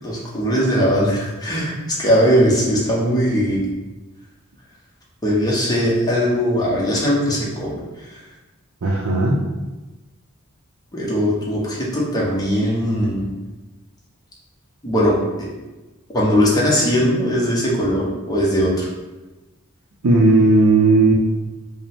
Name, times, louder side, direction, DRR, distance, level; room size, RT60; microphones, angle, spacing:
voice 1, 0.0-3.6 5.2-7.7 8.1-8.2 10.9-13.2 14.8-15.5 16.1-18.9, equal, 15° left, -5 dB, 0.9 m, -19 dB
voice 2, 8.8-9.4 20.0-21.1, right 2 dB, 70° right, -3 dB, 0.5 m, -15 dB
5.0 x 2.1 x 3.5 m, 1.2 s
head